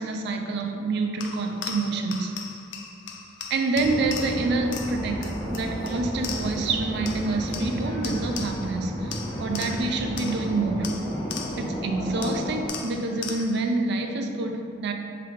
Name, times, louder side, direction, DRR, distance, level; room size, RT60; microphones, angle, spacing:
voice 1, 0.0-2.4 3.5-11.0 11.6-14.9, right 3 dB, 60° right, 5 dB, 0.3 m, -27 dB
sound 1, 1.2-6.7 7.0-8.8 9.1-11.8 12.2-13.7, left 6 dB, 65° left, 0.4 m, -39 dB
sound 2, 3.7-12.7, equal, 15° left, 0.6 m, -32 dB
3.6 x 3.4 x 3.0 m, 2.5 s
head